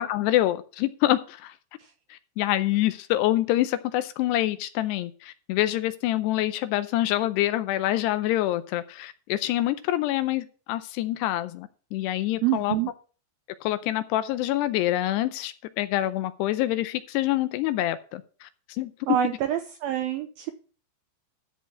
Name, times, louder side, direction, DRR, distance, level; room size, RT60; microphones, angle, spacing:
voice 1, 0.0-1.5 2.1-12.8 13.6-18.5 18.8-18.9, left 15 dB, 80° left, 12 dB, 2.6 m, -26 dB
voice 2, 12.4-12.9 19.1-20.5, right 12 dB, 90° right, 8 dB, 2.1 m, -26 dB
13.0 x 4.6 x 7.1 m, 0.39 s
omnidirectional pair, 5.1 m